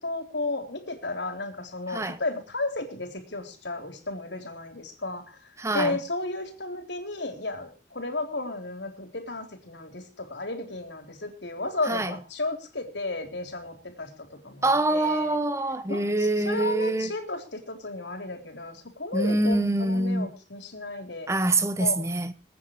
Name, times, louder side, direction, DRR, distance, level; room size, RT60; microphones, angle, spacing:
voice 1, 0.0-5.4 5.7-14.1 14.4-15.4 15.9-21.3 21.8-22.0, left 2 dB, 70° left, 3.6 m, -33 dB
voice 2, 5.6-6.0 11.9-12.1 14.6-17.1 19.1-20.3 21.3-22.3, right 2 dB, 15° right, 0.9 m, -25 dB
27.0 x 9.3 x 3.1 m
head